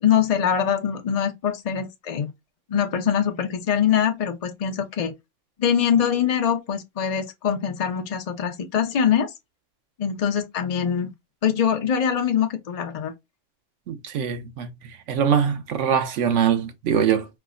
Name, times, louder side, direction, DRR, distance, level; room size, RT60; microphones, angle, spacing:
voice 1, 0.0-2.3 2.7-5.1 5.6-9.3 10.0-11.1 11.4-13.1, left 8 dB, 50° left, 0.4 m, -23 dB
voice 2, 13.9-14.7 15.1-17.3, right 8 dB, 75° right, 1.0 m, -22 dB
4.5 x 2.0 x 2.4 m
omnidirectional pair, 1.3 m